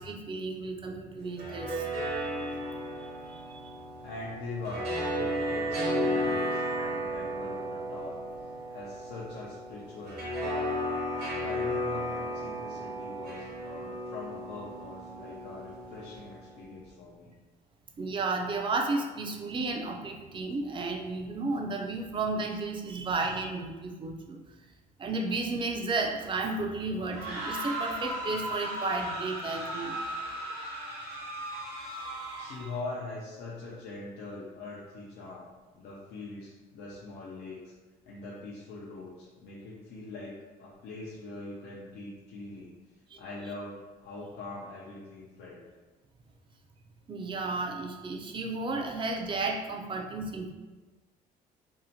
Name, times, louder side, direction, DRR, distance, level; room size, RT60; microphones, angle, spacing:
voice 1, 0.0-3.7 18.0-24.4 25.0-30.0 31.8-32.5 43.1-43.2 47.1-50.5, right 3 dB, 30° right, 2 dB, 0.4 m, -33 dB
sound 1, 1.2-16.4, equal, 65° right, 0.9 m, -34 dB
voice 2, 4.0-8.2 8.7-10.8 11.4-17.4 32.4-35.5 35.7-37.7 38.0-42.7 43.2-45.6, left 3 dB, 75° left, -6 dB, 0.5 m, -42 dB
sound 2, 27.0-32.8, right 1 dB, 90° right, 0.9 m, -36 dB
2.7 x 2.1 x 2.7 m, 1.3 s
cardioid pair, 110°, 17 cm